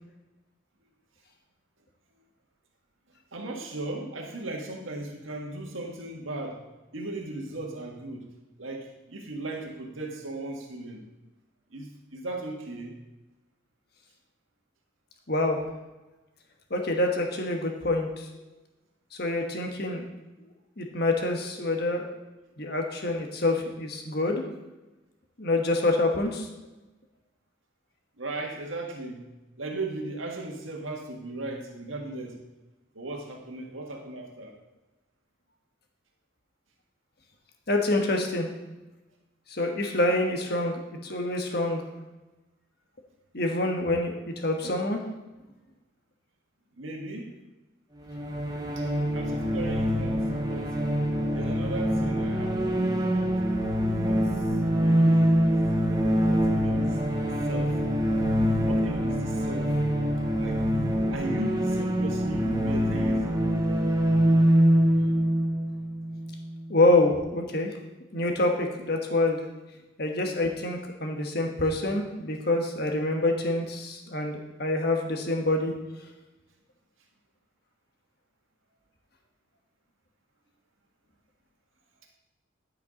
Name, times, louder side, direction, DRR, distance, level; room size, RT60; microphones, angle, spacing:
voice 1, 3.3-6.6 6.9-8.3 8.6-11.0 11.7-13.0 28.2-29.2 29.6-32.4 32.9-34.6 46.8-47.3 48.7-48.9 49.1-50.7 51.3-53.4 54.0-54.2 54.8-57.7 58.6-59.7 60.3-60.6 61.1-63.6, right 2 dB, 80° right, 0 dB, 1.7 m, -37 dB
voice 2, 15.3-15.6 16.7-18.3 19.2-20.0 20.8-22.0 22.6-24.4 25.4-26.5 37.7-38.5 39.5-41.8 43.3-45.0 66.7-67.7 68.1-69.4 70.0-75.7, left 2 dB, 50° left, 3 dB, 1.4 m, -26 dB
sound 1, 48.1-66.7, equal, 20° right, 0.9 m, -25 dB
11.0 x 5.8 x 5.1 m, 1.1 s
head